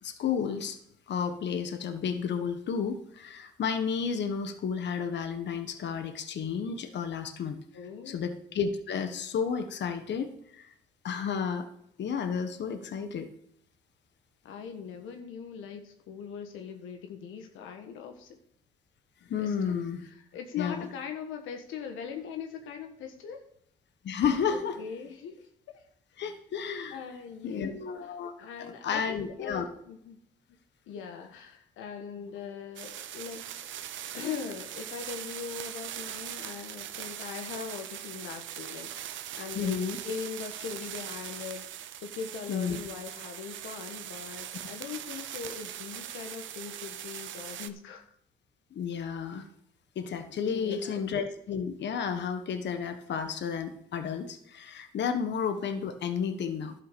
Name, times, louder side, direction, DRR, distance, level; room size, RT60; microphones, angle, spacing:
voice 1, 0.0-0.8 1.1-7.6 8.1-10.7 11.0-11.7 12.0-13.3 19.3-20.1 20.6-20.8 24.0-24.8 26.2-27.0 27.4-28.3 28.6-29.7 39.5-40.0 42.5-42.8 48.7-49.4 49.9-56.7, left 6 dB, 65° left, 8 dB, 1.3 m, -32 dB
voice 2, 7.7-8.2 14.4-18.4 19.4-23.4 24.5-25.9 26.9-28.1 28.4-30.2 30.9-33.5 34.1-39.8 40.0-41.7 41.9-48.1 50.5-51.0, left 7 dB, 90° left, 5 dB, 1.4 m, -41 dB
sound 1, 32.8-47.7, right 11 dB, 75° right, 0.8 m, -41 dB
11.5 x 5.7 x 6.8 m, 0.71 s
cardioid pair, 90°, 20 cm